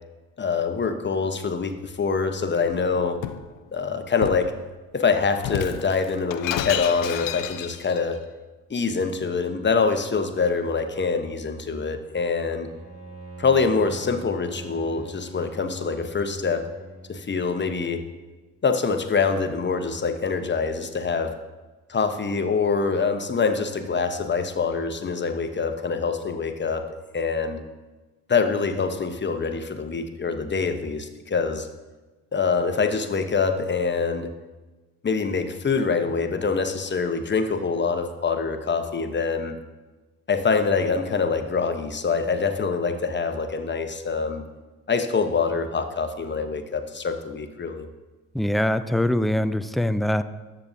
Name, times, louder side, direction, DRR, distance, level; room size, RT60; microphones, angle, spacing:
voice 1, 0.4-3.2 3.7-4.5 4.9-8.2 8.7-12.7 13.4-16.6 17.1-18.0 18.6-21.3 21.9-26.8 27.1-27.6 28.3-31.7 32.3-34.3 35.0-39.6 40.3-44.4 44.9-47.9, left 5 dB, 30° left, 7 dB, 1.0 m, -25 dB
Shatter, 2.6-3.5 4.2-4.5 5.4-8.0, left 11 dB, 55° left, 0.6 m, -31 dB
Bowed string instrument, 12.6-17.9, right 3 dB, 65° right, 2.8 m, -42 dB
voice 2, 48.3-50.2, left 1 dB, ahead, 12 dB, 0.4 m, -23 dB
13.0 x 6.8 x 2.7 m, 1.2 s
hypercardioid pair, 50°, 39 cm